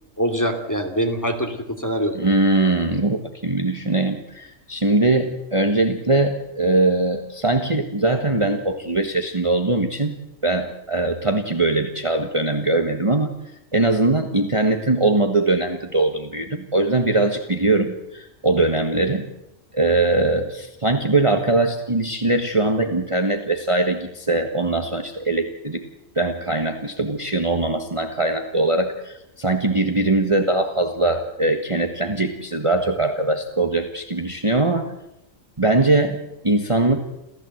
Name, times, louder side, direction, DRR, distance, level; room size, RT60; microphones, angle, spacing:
voice 1, 0.2-2.2, equal, 15° left, 5 dB, 2.7 m, -24 dB
voice 2, 2.1-10.2 10.4-13.3 13.7-19.3 19.7-25.8 26.1-34.9 35.6-37.0, right 2 dB, 25° right, 5 dB, 1.5 m, -21 dB
28.0 x 14.5 x 7.9 m, 0.88 s
omnidirectional pair, 1.4 m